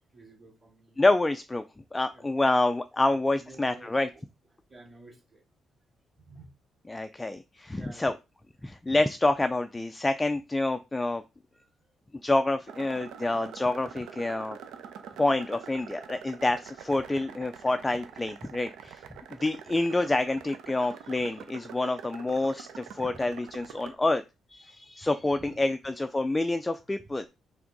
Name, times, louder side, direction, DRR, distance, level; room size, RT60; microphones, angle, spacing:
voice 1, 0.1-1.0 2.1-2.3 3.1-4.2 4.7-5.4 6.2-6.5 7.7-8.1 11.5-11.9 21.7-21.8 25.0-25.1 25.4-25.6 27.2-27.3, right 2 dB, 15° right, 1 dB, 2.3 m, -52 dB
voice 2, 1.0-1.6 1.9-4.1 6.9-8.1 8.6-11.2 12.2-14.6 15.2-19.0 19.4-24.2 24.5-27.3, left 2 dB, 10° left, 9 dB, 0.3 m, -27 dB
sound 1, 12.7-23.9, right 8 dB, 85° right, 0.8 m, -46 dB
6.0 x 3.4 x 5.2 m, 0.27 s
cardioid pair, 170°, 0 cm